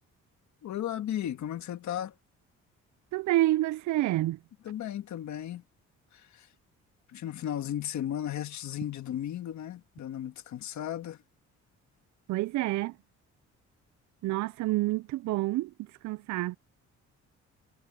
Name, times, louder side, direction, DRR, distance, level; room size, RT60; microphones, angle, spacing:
voice 1, 0.6-2.1 4.6-5.6 6.1-6.5 7.1-11.2, left 11 dB, 70° left, 1.6 m, -35 dB
voice 2, 3.1-4.4 12.3-12.9 14.2-16.6, right 17 dB, 70° right, 0.4 m, -28 dB
cardioid pair, 90°, 30 cm